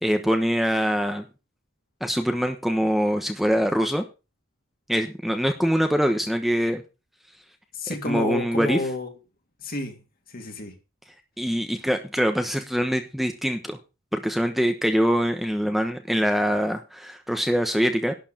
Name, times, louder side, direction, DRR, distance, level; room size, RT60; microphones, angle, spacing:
voice 1, 0.0-1.2 2.0-4.0 4.9-6.8 8.0-8.8 11.4-13.8 14.1-18.1, equal, ahead, 1.0 m, -24 dB
voice 2, 7.7-9.1 9.6-10.0 10.3-10.8, left 2 dB, 45° left, 2.6 m, -30 dB
11.5 x 4.7 x 7.7 m
head